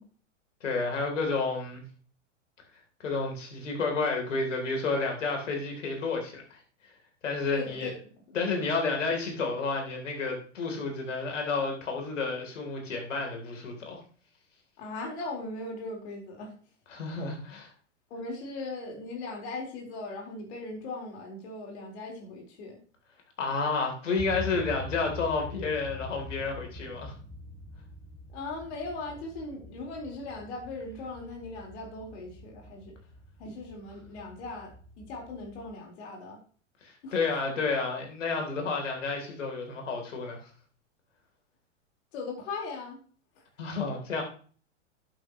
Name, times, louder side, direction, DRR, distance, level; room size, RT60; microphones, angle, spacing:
voice 1, 0.6-1.8 3.0-6.6 7.2-7.9 8.3-14.0 16.9-17.7 23.4-27.1 36.8-40.5 43.6-44.2, left 4 dB, 75° left, 2 dB, 3.6 m, -30 dB
voice 2, 7.5-8.0 14.8-16.5 18.1-22.8 28.3-32.9 33.4-36.4 37.0-37.2 37.5-37.6 42.1-43.0 43.4-43.5, left 3 dB, 60° left, 0 dB, 4.4 m, -39 dB
sound 1, 24.2-35.7, left 2 dB, 15° left, 2.3 m, -44 dB
11.5 x 9.0 x 3.1 m, 0.43 s
hypercardioid pair, 100°, 37 cm